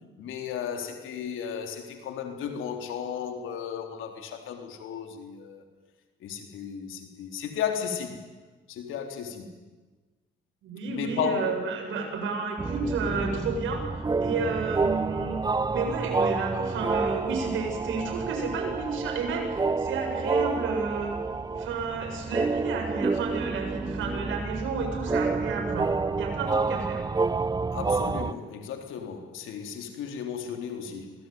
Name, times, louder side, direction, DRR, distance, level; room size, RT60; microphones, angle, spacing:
voice 1, 0.2-5.6 6.2-8.2 8.7-9.5 10.9-11.5 27.7-31.1, left 8 dB, 85° left, 3.9 m, -34 dB
voice 2, 10.6-15.4 15.7-21.2 21.6-25.9 26.2-27.0, right 4 dB, 80° right, 7.8 m, -31 dB
sound 1, 12.6-28.3, right 4 dB, 20° right, 0.8 m, -29 dB
26.5 x 20.0 x 9.4 m
cardioid pair, 90°, 20 cm